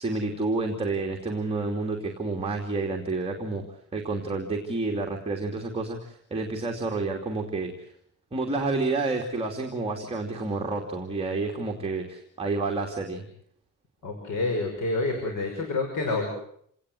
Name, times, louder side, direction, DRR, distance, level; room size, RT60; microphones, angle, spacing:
voice 1, 0.0-3.6 3.9-7.7 8.3-13.2, right 3 dB, 20° right, 0 dB, 2.9 m, -29 dB
voice 2, 14.0-16.3, left 3 dB, 75° left, 3 dB, 5.9 m, -28 dB
28.5 x 18.5 x 7.9 m, 0.66 s
wide cardioid pair, 155°, 31 cm